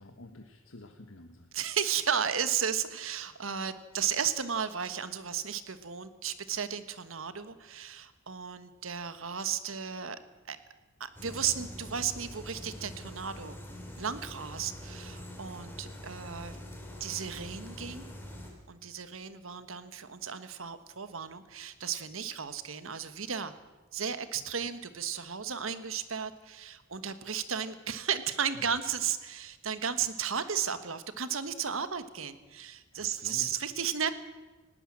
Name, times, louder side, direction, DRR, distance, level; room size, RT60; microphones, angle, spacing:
voice 1, 0.0-1.5 24.3-24.4 28.5-28.8 32.9-33.7, left 1 dB, 90° left, 5 dB, 1.4 m, -50 dB
voice 2, 1.5-10.2 10.5-10.6 11.0-13.6 14.0-16.6 17.0-18.1 18.7-23.5 23.9-34.1, right 7 dB, 85° right, 11 dB, 1.4 m, -34 dB
sound 1, 11.2-18.5, equal, 10° left, 3.9 m, -44 dB
19.5 x 17.5 x 7.6 m, 1.2 s
head